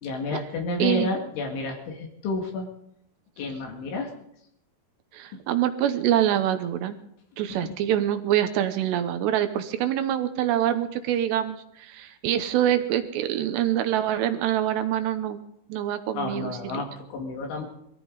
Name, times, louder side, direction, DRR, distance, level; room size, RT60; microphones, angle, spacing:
voice 1, 0.0-2.7 3.4-4.1 5.3-5.4 7.5-7.7 16.2-17.7, left 3 dB, 80° left, 1 dB, 4.5 m, -31 dB
voice 2, 5.1-7.0 7.4-15.4 15.7-16.8, right 11 dB, 75° right, 9 dB, 2.8 m, -25 dB
22.5 x 14.5 x 4.0 m, 0.75 s
omnidirectional pair, 5.5 m